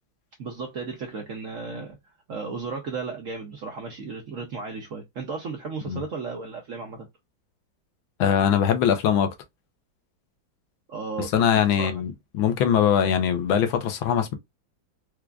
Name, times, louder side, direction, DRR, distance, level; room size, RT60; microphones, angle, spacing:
voice 1, 0.4-2.0 2.3-7.1 10.9-12.0, right 4 dB, 65° right, 0.8 m, -34 dB
voice 2, 8.2-9.3 11.2-14.3, left 8 dB, 85° left, 1.6 m, -22 dB
4.7 x 2.5 x 2.3 m
omnidirectional pair, 2.2 m